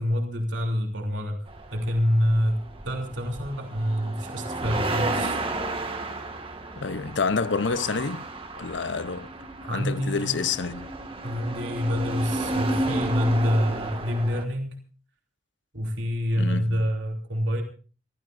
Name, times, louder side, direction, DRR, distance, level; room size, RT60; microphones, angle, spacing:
voice 1, 0.0-1.4 1.7-5.4 9.6-10.4 11.2-14.7 15.7-17.6, equal, 80° right, 3.2 m, -26 dB
sound 1, 1.5-14.4, right 2 dB, 30° right, 1.9 m, -32 dB
voice 2, 6.8-8.3 8.6-9.3 9.7-10.9 16.4-16.8, left 5 dB, 75° left, 0.7 m, -28 dB
25.5 x 15.5 x 2.6 m
head